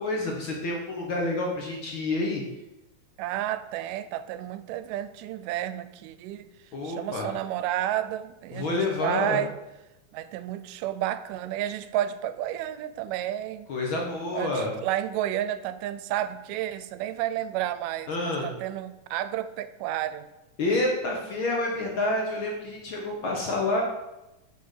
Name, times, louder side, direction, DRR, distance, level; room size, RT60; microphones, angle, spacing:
voice 1, 0.0-2.4 6.7-7.3 8.5-9.4 13.7-14.7 18.1-18.5 20.6-23.8, left 2 dB, 70° left, -1 dB, 1.2 m, -28 dB
voice 2, 3.2-6.5 6.8-9.5 10.1-13.7 14.3-20.3, right 12 dB, 80° right, 13 dB, 2.1 m, -31 dB
5.8 x 5.6 x 6.5 m, 0.96 s
omnidirectional pair, 3.8 m